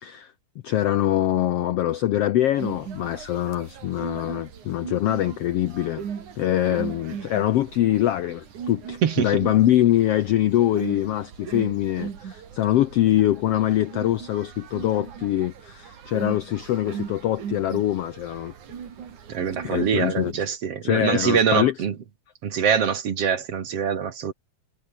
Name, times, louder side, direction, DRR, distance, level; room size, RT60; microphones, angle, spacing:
voice 1, 0.0-0.3 0.6-6.0 6.4-18.5 19.6-20.3 20.8-21.7, left 13 dB, 75° left, 1.4 m, -23 dB
sound 1, 2.6-20.3, right 7 dB, 70° right, 4.1 m, -38 dB
voice 2, 9.0-9.3 19.3-21.9 22.4-24.3, right 7 dB, 50° right, 2.6 m, -24 dB
omnidirectional pair, 3.7 m